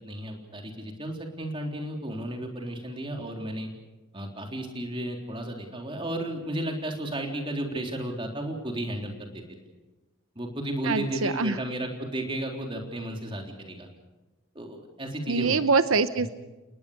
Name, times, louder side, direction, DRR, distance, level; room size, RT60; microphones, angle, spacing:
voice 1, 0.1-3.7 4.1-9.4 10.4-13.9 14.6-15.6, right 1 dB, 25° right, 2 dB, 3.7 m, -33 dB
voice 2, 10.8-11.6 15.3-16.3, right 4 dB, 85° right, 12 dB, 0.8 m, -24 dB
30.0 x 19.0 x 6.7 m, 1.1 s
head